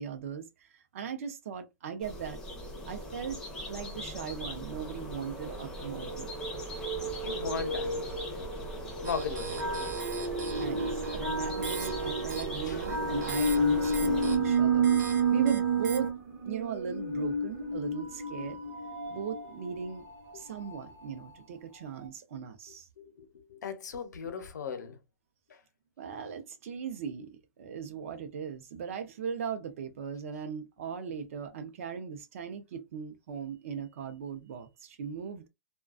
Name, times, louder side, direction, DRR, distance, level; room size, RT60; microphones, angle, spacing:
voice 1, 0.0-2.4 2.9-3.4 3.7-6.3 10.6-16.1 16.4-18.6 19.1-20.0 20.3-22.9 26.0-35.5, right 7 dB, 50° right, 0.5 m, -38 dB
sound 1, 2.0-14.4, left 1 dB, 5° left, 0.5 m, -40 dB
sound 2, 4.0-4.2 5.3-21.3 21.7-21.8 22.0-22.1, right 3 dB, 35° right, 0.9 m, -32 dB
voice 2, 7.2-8.5 9.0-10.0 12.6-12.8 23.0-25.0 25.5-25.6, left 6 dB, 90° left, 0.7 m, -38 dB
sound 3, 9.0-16.1, right 5 dB, 85° right, 0.7 m, -37 dB
2.3 x 2.2 x 2.3 m
hypercardioid pair, 170°, 9 cm